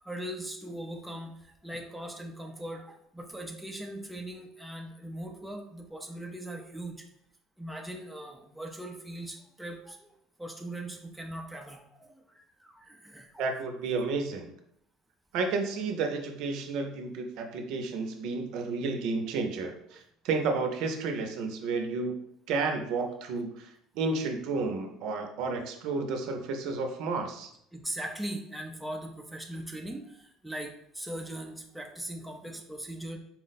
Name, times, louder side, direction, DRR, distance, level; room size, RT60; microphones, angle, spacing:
voice 1, 0.0-7.1 7.6-10.1 10.4-13.5 19.9-20.0 27.2-27.3 27.7-33.2, right 1 dB, ahead, 2 dB, 0.5 m, -40 dB
voice 2, 13.4-14.5 15.3-22.2 22.5-23.7 23.9-27.5, right 4 dB, 65° right, 5 dB, 0.6 m, -31 dB
4.4 x 2.1 x 4.0 m, 0.74 s
cardioid pair, 135°, 0 cm